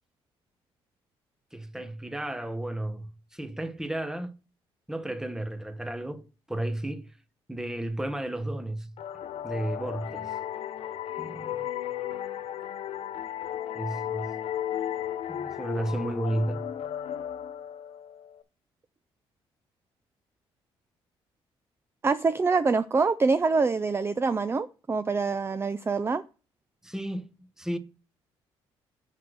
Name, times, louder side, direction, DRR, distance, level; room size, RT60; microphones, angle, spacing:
voice 1, 1.5-4.4 4.9-7.1 7.5-8.9 9.4-10.4 11.2-11.7 13.7-14.4 15.3-16.7 26.8-27.8, right 1 dB, 5° right, 0.9 m, -33 dB
sound 1, 9.0-18.4, left 10 dB, 65° left, 0.7 m, -35 dB
voice 2, 22.0-26.2, right 4 dB, 25° right, 0.4 m, -25 dB
5.8 x 4.6 x 6.4 m
cardioid pair, 75°, 11 cm